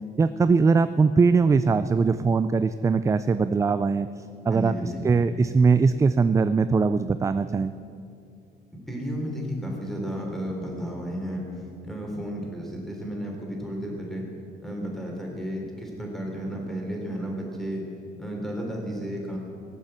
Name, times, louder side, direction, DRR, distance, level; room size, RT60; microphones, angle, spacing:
voice 1, 0.2-4.1 4.4-7.7, right 4 dB, 20° right, 12 dB, 0.3 m, -21 dB
voice 2, 4.5-5.1 8.9-11.5 11.8-14.3 14.6-17.8 18.2-19.4, equal, ahead, -1 dB, 3.7 m, -33 dB
18.0 x 7.3 x 8.0 m, 2.5 s
cardioid pair, 110°, 17 cm